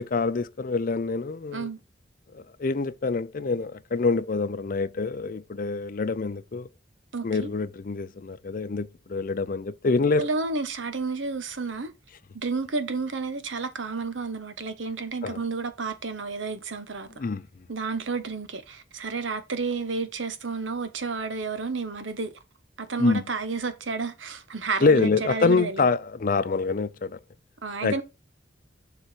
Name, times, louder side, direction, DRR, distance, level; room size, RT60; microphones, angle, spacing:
voice 1, 0.0-1.7 2.3-6.7 7.2-10.3 15.2-15.4 17.2-17.5 23.0-23.2 24.8-27.2 27.8-28.0, left 4 dB, 45° left, 0.5 m, -26 dB
voice 2, 7.1-7.5 10.2-11.9 12.3-17.1 17.7-22.3 22.8-25.9 27.6-28.0, right 4 dB, 85° right, 1.1 m, -31 dB
7.0 x 4.6 x 4.5 m
head